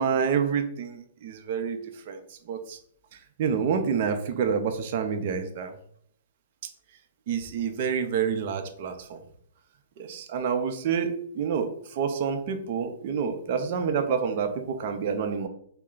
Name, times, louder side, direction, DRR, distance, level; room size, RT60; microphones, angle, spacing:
voice 1, 0.0-1.8 2.1-2.8 3.4-5.7 7.3-9.2 10.0-15.5, right 6 dB, 50° right, 6 dB, 0.6 m, -28 dB
4.1 x 2.2 x 3.8 m, 0.66 s
hypercardioid pair, 140°, 0 cm